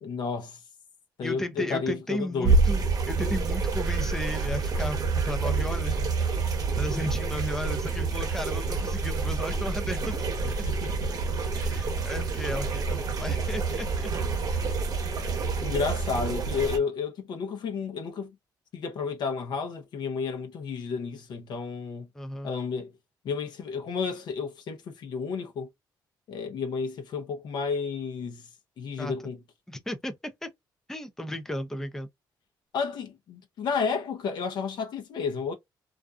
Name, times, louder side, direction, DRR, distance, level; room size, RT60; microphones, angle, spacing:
voice 1, 0.0-0.6 1.2-2.6 3.2-3.4 10.4-11.1 15.6-18.3 18.7-22.1 22.4-22.9 23.2-25.7 26.3-28.5 28.8-29.4 32.7-35.5, left 5 dB, 65° left, 0.6 m, -32 dB
voice 2, 1.2-5.0 5.3-6.1 6.8-10.2 11.5-14.1 22.1-22.5 29.0-29.1 29.7-30.1 30.4-30.5 30.9-32.1, left 1 dB, 5° left, 0.5 m, -34 dB
sound 1, 2.4-16.8, right 4 dB, 50° right, 0.8 m, -28 dB
2.4 x 2.2 x 2.4 m
cardioid pair, 90°, 8 cm